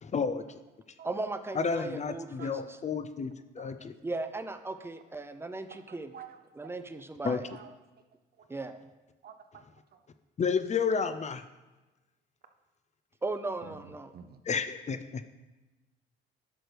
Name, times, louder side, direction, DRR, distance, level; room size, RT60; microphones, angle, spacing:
voice 1, 0.0-0.6 1.5-3.9 7.2-7.4 10.4-11.4 14.5-15.2, left 5 dB, 35° left, 11 dB, 0.5 m, -31 dB
voice 2, 1.0-2.6 4.0-6.1 6.6-7.5 8.5-8.8 13.2-14.1, right 2 dB, 10° right, 9 dB, 0.6 m, -37 dB
voice 3, 5.9-6.4 6.6-6.7 7.2-7.7 8.4-8.5 9.2-9.6 9.9-10.0 13.6-14.4, right 7 dB, 50° right, 8 dB, 0.7 m, -49 dB
10.5 x 6.2 x 3.4 m, 1.1 s
cardioid pair, 90°, 20 cm